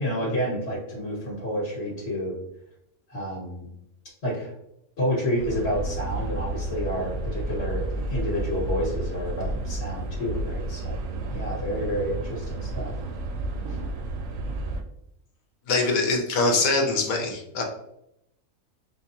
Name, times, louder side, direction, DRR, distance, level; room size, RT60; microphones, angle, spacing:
voice 1, 0.0-2.3 3.1-3.7 4.2-4.5 5.0-11.0 11.3-13.0 13.7-13.8, equal, 45° left, -6 dB, 1.6 m, -29 dB
sound 1, 5.4-14.8, right 2 dB, 70° right, 0.9 m, -31 dB
voice 2, 15.7-17.6, left 3 dB, 75° left, 2 dB, 1.2 m, -23 dB
4.4 x 2.3 x 2.8 m, 0.79 s
omnidirectional pair, 1.5 m